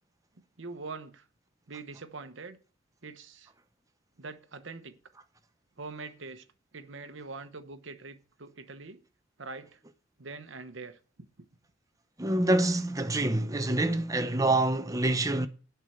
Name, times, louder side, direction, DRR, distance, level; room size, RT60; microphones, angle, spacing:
voice 1, 0.6-1.2 1.7-2.6 3.0-3.5 4.2-5.0 5.8-6.4 6.7-9.0 9.4-9.8 10.2-11.3, right 3 dB, 65° right, 1.0 m, -43 dB
voice 2, 12.2-15.5, right 2 dB, 15° right, 0.7 m, -26 dB
8.1 x 5.7 x 7.7 m
head